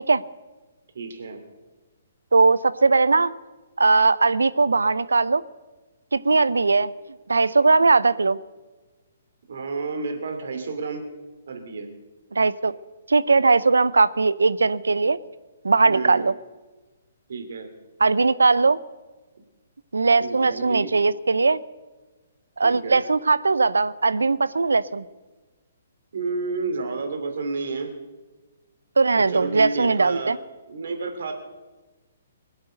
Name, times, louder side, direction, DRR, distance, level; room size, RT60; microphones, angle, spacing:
voice 1, 0.9-1.4 9.5-11.0 11.5-11.9 15.8-16.2 17.3-17.7 20.2-20.9 22.6-23.0 26.1-27.9 29.1-30.3 30.7-31.3, right 4 dB, 65° right, 5 dB, 2.9 m, -30 dB
voice 2, 2.3-3.3 3.8-5.4 6.1-6.9 7.3-8.4 12.3-12.7 13.1-15.2 15.6-16.3 18.0-18.8 19.9-21.6 22.6-25.0 29.0-30.4, right 3 dB, 80° right, 17 dB, 0.6 m, -19 dB
22.0 x 8.0 x 8.0 m, 1.2 s
figure-of-eight pair, 130°, 0 cm